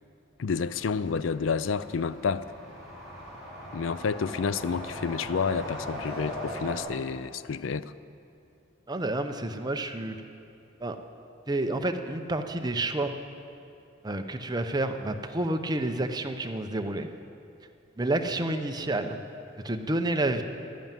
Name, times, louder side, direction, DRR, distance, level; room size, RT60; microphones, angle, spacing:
voice 1, 0.4-2.5 3.7-7.9, left 5 dB, 80° left, 16 dB, 0.4 m, -29 dB
sound 1, 0.6-6.8, left 1 dB, ahead, 4.8 m, -40 dB
voice 2, 8.9-10.1 10.8-11.0 11.5-13.1 14.0-17.1 18.0-19.2 19.6-20.4, right 2 dB, 20° right, 6 dB, 0.7 m, -29 dB
12.5 x 11.5 x 9.0 m, 2.6 s
head